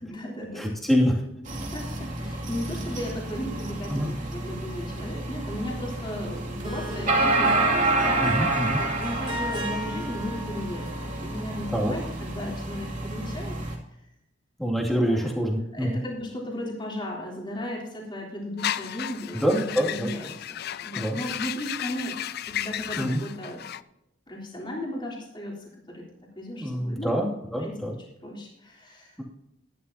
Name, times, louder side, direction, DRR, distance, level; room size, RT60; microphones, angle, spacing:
voice 1, 0.0-0.6 1.7-8.4 8.8-13.6 15.0-15.3 15.7-22.2 22.5-23.6 24.3-26.0 26.4-27.2 27.6-27.8 28.2-29.1, left 1 dB, 25° left, -3 dB, 3.4 m, -35 dB
voice 2, 0.6-1.2 3.9-4.1 8.2-8.8 11.7-11.9 14.6-16.0 19.3-20.1 20.9-21.2 23.0-23.2 26.6-28.0, equal, ahead, -2 dB, 2.6 m, -25 dB
sound 1, 1.5-13.8, right 2 dB, 45° right, 2.6 m, -29 dB
Harp, 6.3-12.1, equal, 25° right, 2.4 m, -35 dB
sound 2, 18.6-23.8, left 11 dB, 55° left, 0.4 m, -34 dB
12.5 x 12.5 x 2.9 m, 0.84 s
head